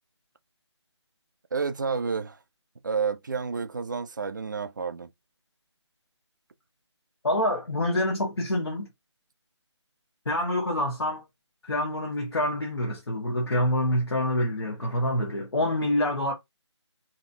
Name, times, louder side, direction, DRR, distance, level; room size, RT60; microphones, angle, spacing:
voice 1, 1.5-2.4 2.8-5.1, right 5 dB, 40° right, 0.4 m, -30 dB
voice 2, 7.2-8.9 10.2-11.2 11.6-16.3, left 1 dB, 60° left, 1.3 m, -26 dB
3.2 x 2.8 x 2.6 m
figure-of-eight pair, 155°, 15 cm